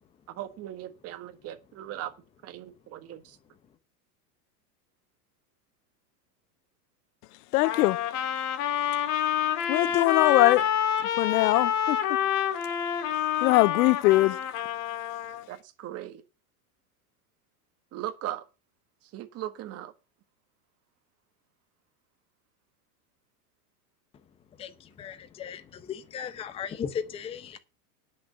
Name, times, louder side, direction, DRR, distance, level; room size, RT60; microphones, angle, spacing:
voice 1, 0.4-2.1 2.4-3.4 15.5-16.2 17.9-18.4 19.1-19.9, right 13 dB, 30° right, 1.6 m, -38 dB
voice 2, 7.5-8.1 8.4-8.5 9.7-10.7 11.2-12.0 13.4-14.4, left 19 dB, 75° left, 0.6 m, -22 dB
Trumpet, 7.6-15.4, left 10 dB, 40° left, 1.7 m, -28 dB
voice 3, 24.6-27.6, left 7 dB, 15° left, 0.6 m, -37 dB
10.5 x 6.4 x 7.0 m
supercardioid pair, 150°, 46 cm